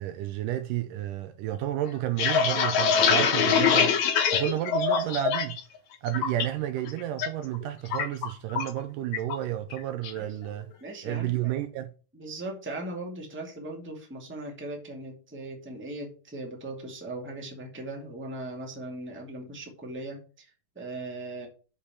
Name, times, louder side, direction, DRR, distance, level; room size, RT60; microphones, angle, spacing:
voice 1, 0.0-5.6 6.0-10.7 11.0-11.9, right 13 dB, 80° right, 2.1 m, -31 dB
sound 1, 1.9-5.6 5.9-6.4 6.8-7.3 7.5-8.8 9.1-9.4 9.7-10.2, left 6 dB, 65° left, 2.1 m, -24 dB
voice 2, 10.8-11.6 12.1-21.5, right 2 dB, 5° right, 1.4 m, -39 dB
6.6 x 5.6 x 6.9 m
omnidirectional pair, 4.1 m